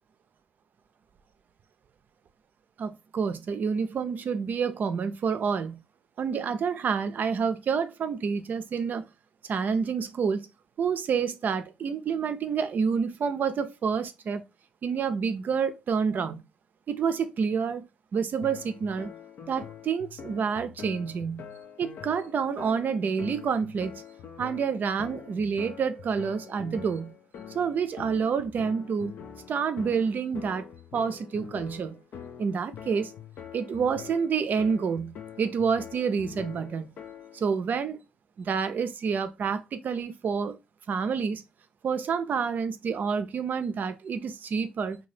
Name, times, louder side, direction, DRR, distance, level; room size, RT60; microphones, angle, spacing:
voice 1, 2.8-5.8 6.2-9.0 9.5-10.5 10.8-14.4 14.8-16.4 16.9-17.8 18.1-19.1 19.5-21.5 21.8-23.9 24.4-27.1 27.5-29.1 29.5-30.7 30.9-32.0 32.4-33.1 33.5-36.9 37.3-38.0 38.4-40.6 40.9-41.4 41.8-45.0, right 6 dB, 55° right, 0.4 m, -28 dB
sound 1, 18.4-37.5, left 8 dB, 65° left, 0.4 m, -44 dB
2.7 x 2.2 x 3.1 m
hypercardioid pair, 45°, 4 cm